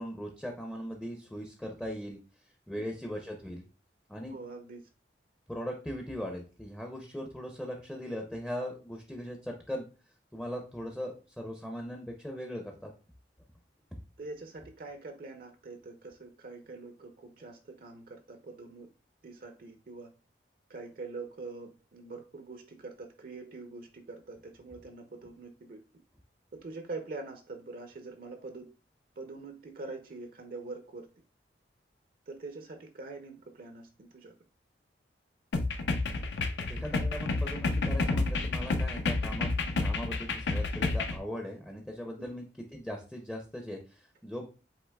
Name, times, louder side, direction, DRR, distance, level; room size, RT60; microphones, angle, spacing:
voice 1, 0.0-2.2 2.7-3.7 4.1-4.4 5.5-9.8 10.3-12.9 36.7-39.5 39.8-42.4 42.7-44.5, equal, 5° left, 1 dB, 0.5 m, -39 dB
voice 2, 4.3-4.9 14.2-18.9 19.2-20.1 20.7-25.8 26.5-28.7 29.2-31.1 32.3-34.3, right 3 dB, 55° right, 6 dB, 0.5 m, -44 dB
sound 1, 35.5-41.2, left 3 dB, 75° left, 0.5 m, -30 dB
7.9 x 2.9 x 2.2 m, 0.35 s
head